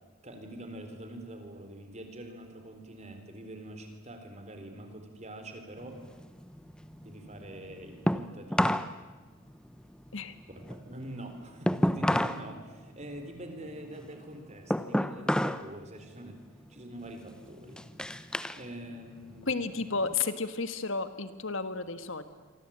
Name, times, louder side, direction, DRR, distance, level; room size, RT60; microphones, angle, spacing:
voice 1, 0.2-6.0 7.0-8.8 10.5-16.4 16.7-18.1 18.5-19.6, right 1 dB, 30° right, 6 dB, 4.1 m, -45 dB
sound 1, 5.8-8.9 9.3-12.5 12.8-15.7 16.0-16.4 17.0-18.6 19.0-20.1, equal, 5° left, 0.7 m, -31 dB
voice 2, 19.5-22.2, left 4 dB, 60° left, 11 dB, 1.5 m, -32 dB
27.5 x 24.5 x 8.8 m, 1.3 s
head